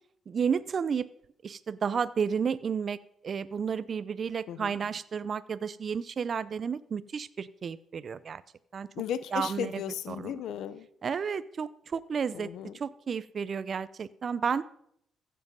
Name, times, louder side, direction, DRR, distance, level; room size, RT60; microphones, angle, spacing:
voice 1, 0.3-1.1 1.4-3.0 3.2-8.4 8.7-8.9 9.3-9.7 10.1-10.3 11.0-12.5 12.8-14.6, right 6 dB, 45° right, 16 dB, 0.6 m, -32 dB
voice 2, 8.9-10.9 12.3-12.8, left 9 dB, 80° left, 15 dB, 0.7 m, -35 dB
15.0 x 7.6 x 5.4 m, 0.72 s
cardioid pair, 90°, 0 cm